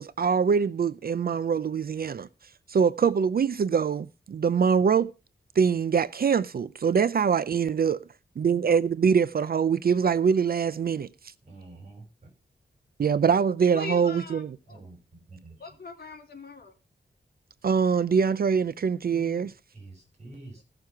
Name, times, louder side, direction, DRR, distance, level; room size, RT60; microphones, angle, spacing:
voice 1, 0.0-2.3 2.7-5.1 5.6-8.1 8.4-11.1 13.0-14.6 17.6-19.5, right 6 dB, 55° right, 0.5 m, -24 dB
voice 2, 11.4-12.0 14.7-15.6 19.1-20.6, right 2 dB, 35° right, 6.3 m, -47 dB
voice 3, 13.7-14.4 14.7-14.8 15.6-16.7, left 3 dB, 55° left, 3.5 m, -40 dB
16.0 x 6.7 x 5.8 m
wide cardioid pair, 160°, 19 cm